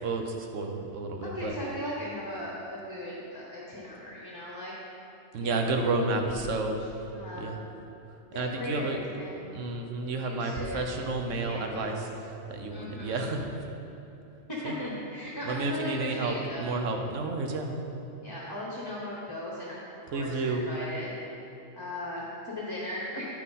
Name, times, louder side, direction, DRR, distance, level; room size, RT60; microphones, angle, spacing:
voice 1, 0.0-1.5 5.3-6.8 7.4-7.6 8.4-9.0 9.5-11.9 12.5-13.4 14.6-14.7 15.5-17.7 20.1-20.6, right 3 dB, 80° right, 4 dB, 1.1 m, -31 dB
voice 2, 1.2-4.7 5.4-7.5 8.3-9.6 10.2-10.8 11.4-12.1 12.7-13.3 14.6-16.7 18.2-19.8 20.1-21.1 21.8-23.3, left 1 dB, 20° left, -5 dB, 0.9 m, -38 dB
8.9 x 6.0 x 4.1 m, 2.9 s
omnidirectional pair, 1.3 m